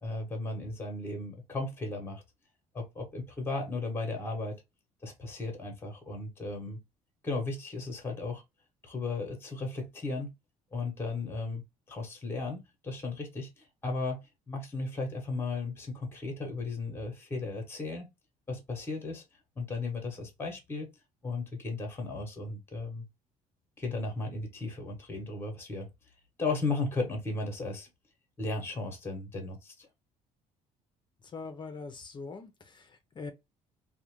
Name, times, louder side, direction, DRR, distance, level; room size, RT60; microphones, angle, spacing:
voice 1, 0.0-2.2 2.7-4.5 5.0-6.8 7.2-8.4 8.8-10.3 10.7-11.6 11.9-14.2 14.5-18.1 18.5-19.2 19.6-20.9 21.2-23.1 23.8-25.9 26.4-27.9 28.4-29.9, left 3 dB, 15° left, 0.9 m, -35 dB
voice 2, 31.3-33.3, left 4 dB, 35° left, 0.5 m, -42 dB
2.4 x 2.1 x 2.9 m
cardioid pair, 105°, 15 cm